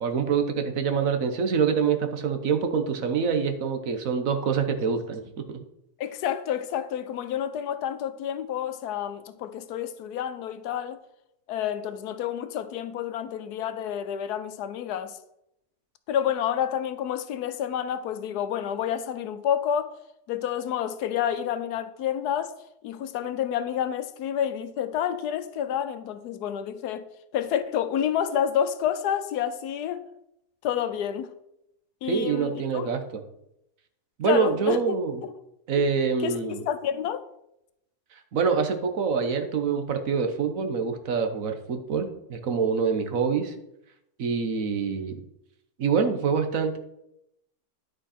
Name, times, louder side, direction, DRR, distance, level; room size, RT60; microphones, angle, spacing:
voice 1, 0.0-5.6 32.0-33.2 34.2-35.2 35.7-36.6 38.1-43.5 44.2-45.2 45.8-46.8, right 6 dB, 60° right, 1.3 m, -26 dB
voice 2, 6.0-11.0 11.5-15.2 16.1-19.9 20.3-22.5 22.8-27.1 27.3-30.1 30.6-31.3 32.0-32.9 34.2-35.0 35.2-35.3 35.8-35.9 36.2-37.2, left 9 dB, 85° left, 1.2 m, -29 dB
10.5 x 5.3 x 4.2 m
omnidirectional pair, 1.7 m